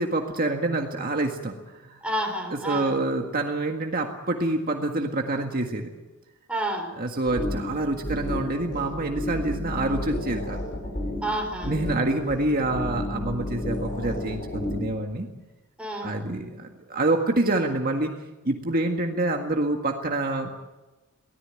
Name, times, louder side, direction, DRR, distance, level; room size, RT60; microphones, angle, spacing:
voice 1, 0.0-2.0 2.7-5.9 7.0-10.6 11.7-15.3 16.0-18.1 18.5-20.5, right 2 dB, 40° right, 2 dB, 1.8 m, -27 dB
voice 2, 2.0-3.0 6.5-6.9 11.2-11.8 15.8-16.2, right 1 dB, 5° right, 3 dB, 4.1 m, -30 dB
sound 1, 7.3-15.0, left 1 dB, 40° left, 5.8 m, -32 dB
24.0 x 17.5 x 8.9 m, 1.1 s
head